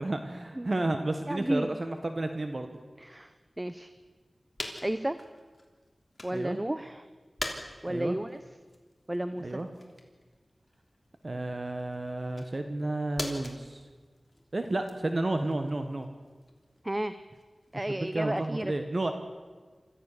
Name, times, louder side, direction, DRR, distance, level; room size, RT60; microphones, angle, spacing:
voice 1, 0.0-2.8 6.3-6.6 7.9-8.2 9.4-9.7 11.2-13.8 14.5-16.1 17.9-19.1, right 2 dB, 50° right, 6 dB, 1.4 m, -32 dB
voice 2, 1.2-1.7 3.0-3.3 3.6-3.9 4.8-5.2 6.2-7.1 7.8-8.4 9.1-9.6 16.8-17.1 17.7-18.7, right 1 dB, 20° right, 11 dB, 0.7 m, -32 dB
sound 1, 4.6-6.5 6.9-18.0, left 1 dB, 30° left, 3.1 m, -44 dB
26.5 x 14.5 x 6.9 m, 1.4 s
wide cardioid pair, 65°, 0 cm